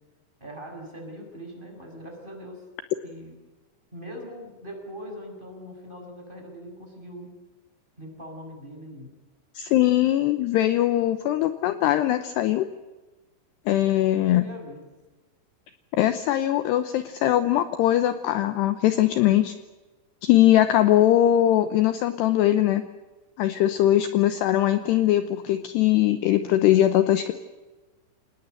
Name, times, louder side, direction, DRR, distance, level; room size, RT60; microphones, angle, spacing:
voice 1, 0.4-2.6 3.0-3.3 3.9-7.3 8.0-9.1 13.8-14.8, equal, 10° right, 1 dB, 6.5 m, -41 dB
voice 2, 9.5-12.7 13.7-14.4 15.9-19.5 20.2-22.8 23.4-27.3, left 13 dB, 75° left, 10 dB, 2.7 m, -21 dB
26.5 x 19.5 x 8.0 m, 1.2 s
omnidirectional pair, 5.4 m